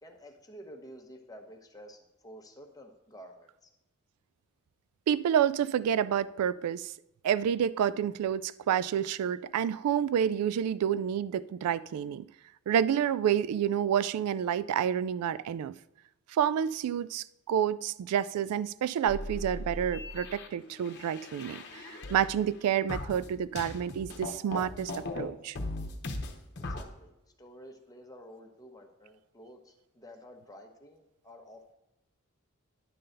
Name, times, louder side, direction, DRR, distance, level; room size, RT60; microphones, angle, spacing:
voice 1, 0.0-3.7 26.6-27.1 27.4-31.7, equal, 15° left, 0.9 m, -51 dB
voice 2, 5.1-6.9 7.2-12.3 12.7-15.7 16.3-25.6, right 9 dB, 90° right, 0.3 m, -29 dB
sound 1, 19.1-22.6 22.9-25.2 25.6-26.8, left 2 dB, 50° left, 0.9 m, -38 dB
10.0 x 3.8 x 6.6 m
head